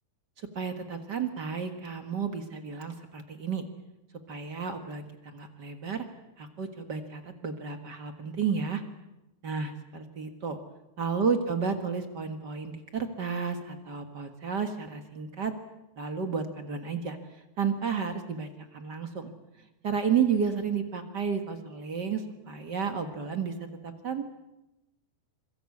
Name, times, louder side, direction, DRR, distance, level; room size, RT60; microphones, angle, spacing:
voice 1, 0.4-3.6 4.3-6.0 6.4-8.8 9.4-10.6 11.0-15.5 16.0-17.2 17.6-19.3 19.8-23.5 23.8-24.2, right 6 dB, 45° right, 7 dB, 1.4 m, -32 dB
26.0 x 23.0 x 8.5 m, 0.97 s
omnidirectional pair, 4.1 m